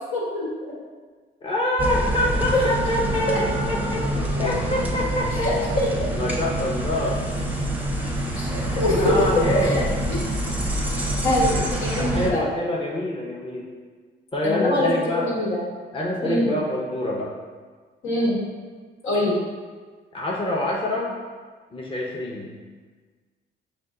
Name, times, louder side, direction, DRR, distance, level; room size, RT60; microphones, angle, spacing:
voice 1, 0.1-0.5 2.5-2.6 5.8-5.9 8.0-8.1 8.4-8.5 8.8-9.0 9.4-9.8 11.2-12.4 14.4-15.6 16.2-16.5 18.0-18.4 19.0-19.4, left 1 dB, 85° left, -6 dB, 1.5 m, -23 dB
voice 2, 1.4-4.1 4.4-5.6 6.2-7.2 8.5-9.8 11.9-13.7 14.3-15.3 15.9-17.3 20.1-21.2 21.7-22.5, left 1 dB, 25° left, -3 dB, 0.7 m, -26 dB
sound 1, 1.8-12.3, right 1 dB, 10° right, 0.6 m, -26 dB
5.4 x 2.3 x 3.7 m, 1.5 s
cardioid pair, 90°, 20 cm